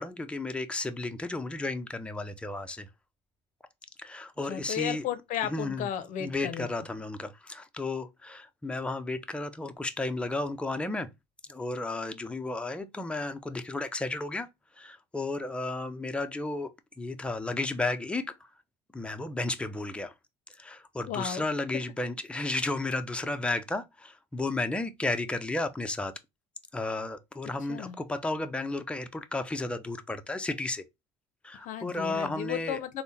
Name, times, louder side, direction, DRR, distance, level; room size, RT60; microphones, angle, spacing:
voice 1, 0.0-2.9 4.0-5.0 5.5-5.9 6.2-11.1 11.5-14.5 14.8-16.7 17.0-18.4 18.9-20.1 20.6-26.1 26.7-30.8 31.4-32.8, left 2 dB, 10° left, 0.5 m, -33 dB
voice 2, 4.5-6.7 21.1-21.5 27.7-28.0 31.5-33.0, left 10 dB, 65° left, 0.5 m, -34 dB
3.5 x 2.1 x 2.7 m
supercardioid pair, 80°, 14 cm